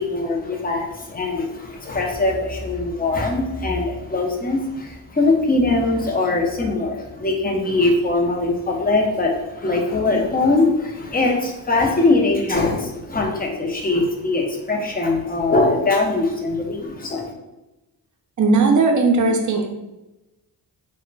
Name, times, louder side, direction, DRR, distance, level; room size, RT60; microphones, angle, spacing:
voice 1, 0.0-17.2, left 2 dB, 20° left, 0 dB, 0.6 m, -21 dB
voice 2, 18.4-19.7, right 3 dB, 45° right, 3 dB, 0.5 m, -17 dB
2.2 x 2.1 x 3.8 m, 1.0 s
cardioid pair, 85°, 44 cm